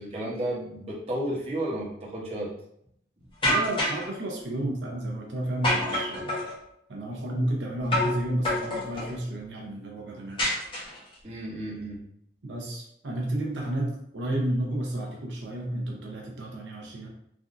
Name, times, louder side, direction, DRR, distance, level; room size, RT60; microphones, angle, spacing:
voice 1, 0.0-2.5 3.2-3.3 11.2-12.0, right 1 dB, 35° right, -6 dB, 0.8 m, -32 dB
sound 1, 3.4-4.1 5.6-6.5 7.9-8.2 8.4-9.1 10.4-11.1, left 1 dB, 30° left, 1.0 m, -27 dB
voice 2, 3.4-6.4 6.9-10.4 12.4-17.1, right 1 dB, 90° right, -1 dB, 0.7 m, -31 dB
3.4 x 2.5 x 2.5 m, 0.72 s
head